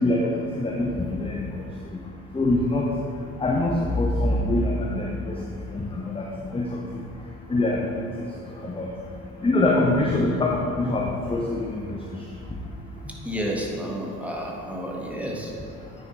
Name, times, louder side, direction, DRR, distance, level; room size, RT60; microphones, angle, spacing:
voice 1, 0.0-1.7 2.3-2.9 3.4-5.4 5.7-6.8 7.5-8.3 8.6-8.9 9.4-12.0, left 2 dB, 15° left, -1 dB, 0.8 m, -24 dB
voice 2, 13.0-15.5, equal, 5° right, -2 dB, 1.4 m, -31 dB
9.3 x 4.6 x 4.1 m, 2.6 s
figure-of-eight pair, 50°, 42 cm